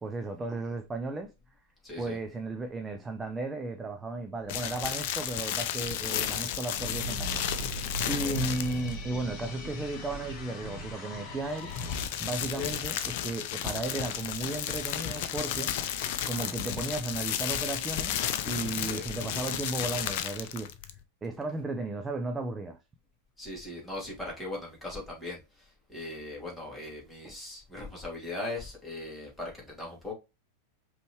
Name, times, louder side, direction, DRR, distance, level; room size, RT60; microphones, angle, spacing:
voice 1, 0.0-1.3 2.0-7.4 8.1-11.7 12.2-15.7 16.2-20.7 21.2-22.8 27.2-27.3, right 2 dB, 15° right, 0.5 m, -35 dB
voice 2, 1.8-2.2 8.0-8.3 12.5-12.7 18.8-19.0 23.4-25.4 25.9-30.1, left 2 dB, 5° left, 2.5 m, -39 dB
sound 1, 4.5-9.0 11.4-21.0, left 10 dB, 50° left, 0.5 m, -33 dB
sound 2, 6.8-12.0, right 1 dB, 30° left, 2.2 m, -38 dB
5.2 x 3.2 x 3.0 m
figure-of-eight pair, 90°, 0 cm